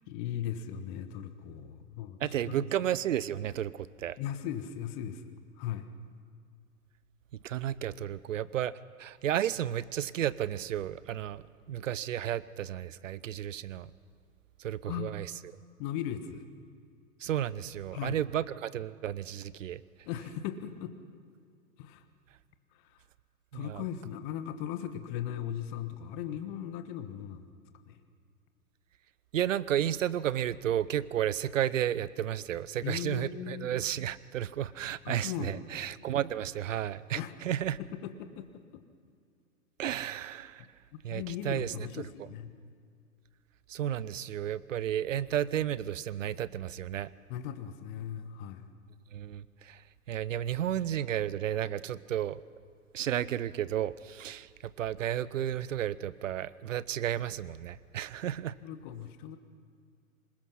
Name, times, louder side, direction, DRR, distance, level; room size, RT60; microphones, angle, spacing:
voice 1, 0.1-2.7 4.2-5.9 14.9-15.1 15.8-16.4 17.9-18.2 20.0-20.9 21.8-22.0 22.7-23.0 23.5-27.5 27.8-28.0 32.8-33.7 35.0-35.6 37.1-37.3 37.8-38.5 38.7-38.8 41.1-42.5 47.3-48.7 58.6-59.4, left 10 dB, 35° left, 9 dB, 1.4 m, -38 dB
voice 2, 2.2-4.2 7.4-8.7 9.0-11.4 11.7-13.9 14.6-15.3 17.2-19.8 23.5-23.8 29.3-37.2 37.4-37.8 39.8-40.7 41.0-41.7 43.7-47.1 49.1-49.8 50.1-52.4 52.9-54.5 54.8-58.5, right 11 dB, 60° right, 19 dB, 0.8 m, -32 dB
25.0 x 21.0 x 5.7 m, 2.3 s
figure-of-eight pair, 110°, 42 cm